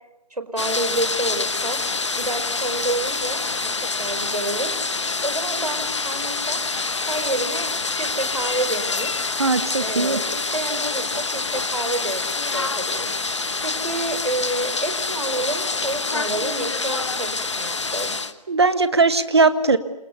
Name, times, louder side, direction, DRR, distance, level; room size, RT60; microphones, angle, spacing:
voice 1, 0.3-1.8 2.1-4.7 5.2-6.6 7.0-7.7 7.9-9.1 9.8-12.2 12.5-18.2, right 2 dB, 70° right, 8 dB, 5.0 m, -29 dB
sound 1, 0.6-18.3, left 3 dB, 45° left, 1.3 m, -26 dB
voice 2, 9.4-10.2 18.5-19.8, right 3 dB, 40° right, 11 dB, 1.6 m, -19 dB
29.5 x 27.0 x 7.0 m, 0.95 s
figure-of-eight pair, 155°, 21 cm